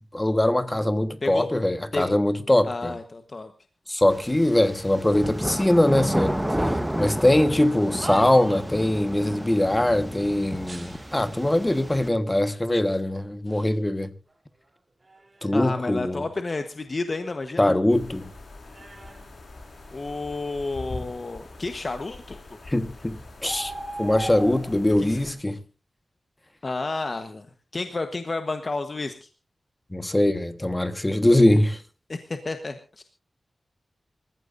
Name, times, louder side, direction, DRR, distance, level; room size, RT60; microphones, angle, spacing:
voice 1, 0.1-3.0 3.9-14.1 15.4-16.2 17.6-18.3 22.7-23.7 24.0-25.6 29.9-31.8, left 1 dB, 15° left, 1.4 m, -22 dB
voice 2, 2.6-3.5 15.5-17.7 19.9-22.4 25.0-25.2 26.6-27.5 27.7-29.3 32.1-33.0, left 3 dB, 45° left, 1.2 m, -31 dB
sound 1, 4.1-12.1, equal, 5° right, 1.2 m, -31 dB
sound 2, 7.9-8.9 10.6-11.5 12.3-12.4 13.1-13.8 14.3-15.7 16.1-17.8 18.0-20.2 20.9-21.2, right 2 dB, 35° right, 3.4 m, -43 dB
sound 3, 17.9-25.3, equal, 75° left, 5.1 m, -39 dB
26.5 x 15.0 x 2.6 m
wide cardioid pair, 90°, 0 cm